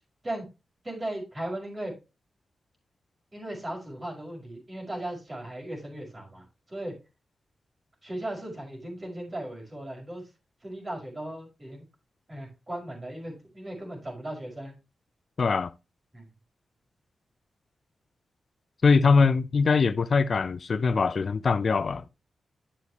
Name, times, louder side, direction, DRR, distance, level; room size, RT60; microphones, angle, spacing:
voice 1, 0.8-1.9 3.3-6.9 8.0-10.2 10.6-11.8 12.3-14.7 16.1-16.3, right 1 dB, 30° right, 5.5 m, -37 dB
voice 2, 15.4-15.7 18.8-22.1, left 4 dB, 60° left, 0.5 m, -22 dB
10.0 x 7.1 x 3.0 m
cardioid pair, 55°, 0 cm